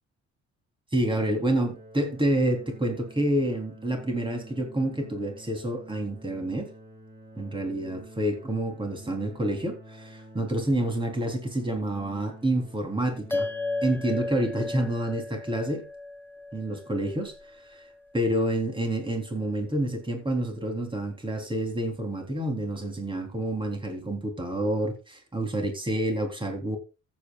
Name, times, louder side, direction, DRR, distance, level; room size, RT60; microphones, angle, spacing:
voice 1, 0.9-6.7 7.4-13.5 13.8-15.9 16.5-17.3 17.6-17.8 18.1-26.8, right 1 dB, 15° right, 3.7 m, -28 dB
sound 1, 1.2-14.7, equal, 35° right, 4.1 m, -48 dB
sound 2, 13.3-18.0, left 3 dB, 5° left, 1.1 m, -35 dB
15.0 x 8.9 x 2.5 m
cardioid pair, 90°, 30 cm